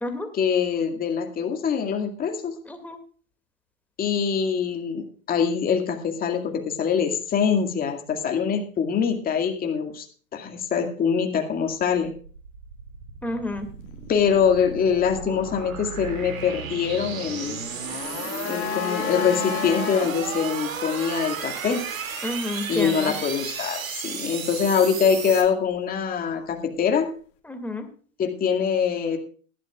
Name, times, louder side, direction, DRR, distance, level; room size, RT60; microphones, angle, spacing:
voice 1, 0.3-2.6 4.0-10.1 10.3-12.1 14.1-17.6 18.5-21.9 22.7-27.1 28.2-29.2, left 7 dB, 20° left, 4 dB, 2.1 m, -24 dB
sound 1, 11.8-25.4, right 6 dB, 70° right, 2.7 m, -34 dB
voice 2, 13.2-13.7 22.2-23.1 27.5-27.9, left 1 dB, 5° left, 5 dB, 2.4 m, -30 dB
sound 2, 17.5-20.1 20.4-20.5, left 11 dB, 35° left, 2.1 m, -31 dB
19.5 x 12.0 x 2.4 m, 0.42 s
hypercardioid pair, 110°, 41 cm